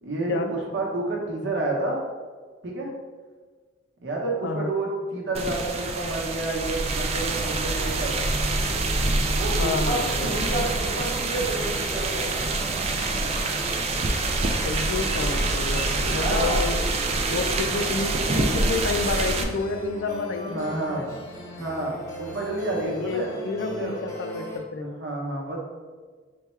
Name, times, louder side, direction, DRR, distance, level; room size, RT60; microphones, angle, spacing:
voice 1, 0.0-2.0 2.6-2.9 4.0-8.2 9.3-12.5 16.1-16.6 17.1-17.9 18.6-18.7 20.5-21.0 21.6-23.3 23.7-24.0 24.8-25.6, right 2 dB, 80° right, -2 dB, 0.9 m, -30 dB
sound 1, 5.3-19.4, right 2 dB, 35° right, 0.3 m, -26 dB
sound 2, 8.6-24.6, left 1 dB, 15° left, 0.7 m, -39 dB
voice 2, 9.6-10.4 14.6-16.8 17.3-21.1 22.7-25.0, left 4 dB, 75° left, 7 dB, 0.4 m, -30 dB
3.4 x 2.2 x 4.2 m, 1.5 s
head